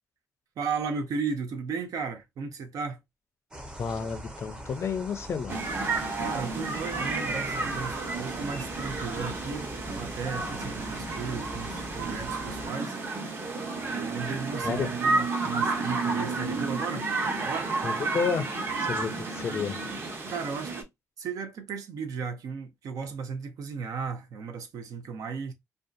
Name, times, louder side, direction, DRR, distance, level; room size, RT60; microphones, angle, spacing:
voice 1, 0.6-3.0 6.2-13.0 13.9-17.7 20.3-20.9 21.2-25.5, right 5 dB, 75° right, 0.7 m, -35 dB
sound 1, 3.5-12.7, equal, 15° right, 0.7 m, -42 dB
voice 2, 3.8-5.6 14.6-14.9 17.8-18.5 18.8-19.8, left 6 dB, 50° left, 0.4 m, -31 dB
sound 2, 5.5-20.8, right 3 dB, 40° right, 0.9 m, -31 dB
2.6 x 2.3 x 2.3 m
cardioid pair, 115°, 6 cm